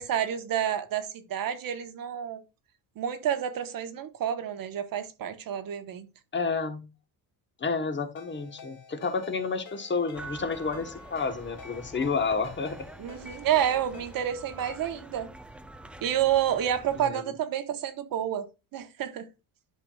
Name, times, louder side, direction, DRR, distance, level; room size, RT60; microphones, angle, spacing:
voice 1, 0.0-2.4 3.0-6.1 13.0-15.3 16.0-18.5 18.7-19.3, right 10 dB, 55° right, 1.2 m, -29 dB
voice 2, 6.3-6.9 7.6-12.9 17.0-17.2, left 4 dB, 25° left, 1.2 m, -30 dB
Ringtone, 8.2-15.0, left 5 dB, 50° left, 2.5 m, -49 dB
sound 1, 10.1-17.0, right 1 dB, 5° right, 0.5 m, -46 dB
11.0 x 5.9 x 2.3 m
cardioid pair, 130°, 41 cm